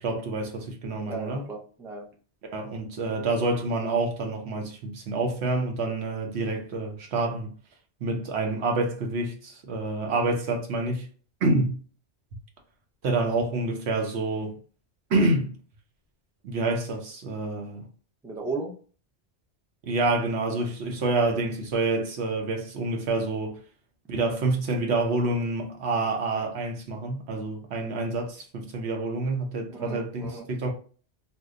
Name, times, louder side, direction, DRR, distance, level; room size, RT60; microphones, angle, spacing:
voice 1, 0.0-1.4 2.5-7.5 8.0-11.1 11.4-11.8 13.0-14.6 15.1-15.6 16.4-17.9 19.8-23.6 24.1-30.7, right 2 dB, 80° right, 1.0 m, -27 dB
voice 2, 1.1-2.1 18.2-18.7 29.7-30.5, right 3 dB, 5° right, 0.3 m, -35 dB
2.7 x 2.1 x 3.6 m
omnidirectional pair, 1.1 m